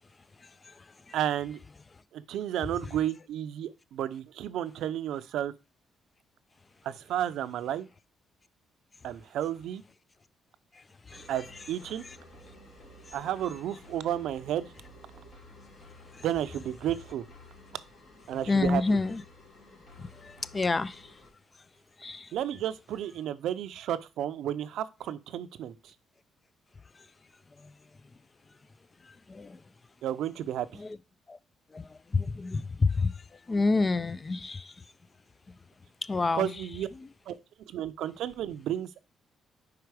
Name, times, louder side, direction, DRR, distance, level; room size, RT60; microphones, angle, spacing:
voice 1, 0.4-1.2 10.7-11.3 12.0-12.2 13.0-13.2 16.1-16.2 18.5-19.2 20.0-21.2 22.0-22.3 26.9-27.1 27.5-27.7 29.0-29.6 30.7-31.0 31.3-31.4 31.7-34.9 36.0-36.5 36.9-37.1, left 3 dB, 30° left, 0.3 m, -30 dB
voice 2, 1.1-1.6 2.1-5.5 6.8-7.9 9.0-9.8 11.3-12.0 13.1-14.7 16.2-17.3 18.3-18.8 22.3-25.9 30.0-30.8 36.3-36.9 37.3-39.0, right 11 dB, 80° right, 0.5 m, -32 dB
sound 1, 11.1-21.3, left 2 dB, 55° left, 2.4 m, -53 dB
4.9 x 4.7 x 4.7 m
cardioid pair, 90°, 0 cm